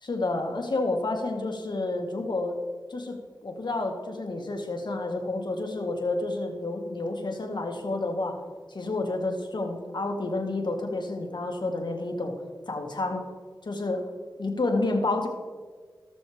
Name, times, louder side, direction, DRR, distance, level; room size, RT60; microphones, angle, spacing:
voice 1, 0.0-2.5 2.9-3.2 3.4-8.4 8.7-12.3 12.7-13.3 13.6-14.1 14.4-15.3, left 2 dB, 70° left, 3 dB, 1.7 m, -29 dB
18.5 x 6.2 x 3.4 m, 1.6 s
cardioid pair, 45°, 8 cm